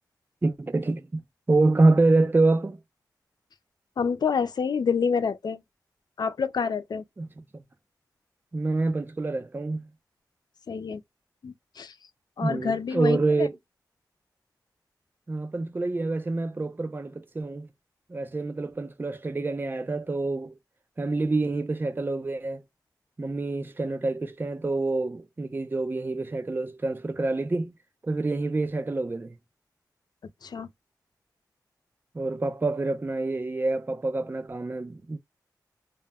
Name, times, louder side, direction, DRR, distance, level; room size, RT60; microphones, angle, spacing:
voice 1, 0.4-1.2 1.5-2.8 7.2-7.3 8.5-9.8 12.4-13.6 15.3-17.7 18.1-20.5 21.0-22.6 23.2-27.7 28.0-29.4 32.1-35.2, right 2 dB, 30° right, 0.4 m, -26 dB
voice 2, 4.0-5.6 6.2-7.0 10.7-11.0 11.4-11.9 12.4-13.5 30.4-30.7, left 6 dB, 70° left, 0.4 m, -27 dB
2.1 x 2.1 x 3.4 m
cardioid pair, 55°, 7 cm